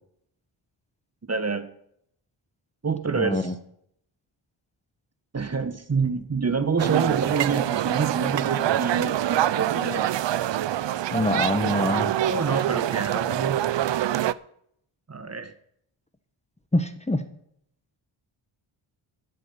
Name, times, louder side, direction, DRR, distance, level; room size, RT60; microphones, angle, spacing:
voice 1, 1.3-1.7 2.8-3.5 5.3-10.1 12.3-13.7 15.1-15.5, right 5 dB, 30° right, 10 dB, 1.4 m, -27 dB
voice 2, 3.2-3.5 11.1-12.1 16.7-17.3, left 1 dB, 15° left, 9 dB, 1.2 m, -25 dB
sound 1, 6.8-14.3, right 12 dB, 60° right, 0.6 m, -25 dB
12.5 x 10.5 x 5.6 m, 0.70 s
cardioid pair, 75°, 49 cm